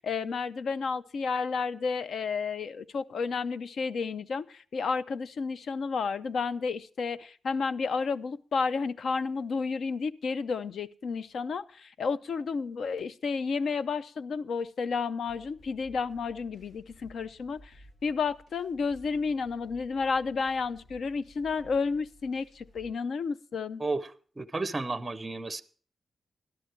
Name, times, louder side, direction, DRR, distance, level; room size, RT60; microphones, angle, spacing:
voice 1, 0.0-17.7 18.0-23.8, left 5 dB, 65° left, 15 dB, 0.5 m, -31 dB
sound 1, 15.2-22.9, equal, 80° left, 7.9 m, -56 dB
voice 2, 23.8-25.6, right 3 dB, 20° right, 10 dB, 0.5 m, -33 dB
12.5 x 11.5 x 4.4 m, 0.43 s
wide cardioid pair, 135°, 0 cm